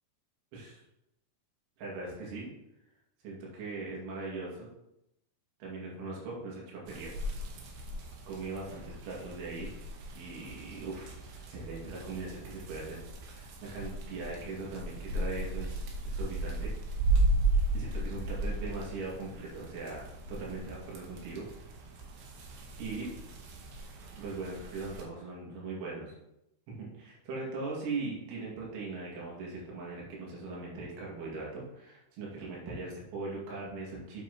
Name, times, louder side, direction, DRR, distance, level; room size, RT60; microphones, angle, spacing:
voice 1, 1.8-2.5 3.2-4.7 5.6-7.1 8.3-9.7 10.2-11.1 11.5-16.7 17.7-21.5 22.8-23.1 24.2-26.1 26.7-34.2, right 3 dB, 85° right, -4 dB, 4.5 m, -40 dB
sound 1, 6.9-25.0, right 2 dB, 70° right, 2.9 m, -35 dB
8.5 x 8.0 x 3.0 m, 0.85 s
omnidirectional pair, 5.3 m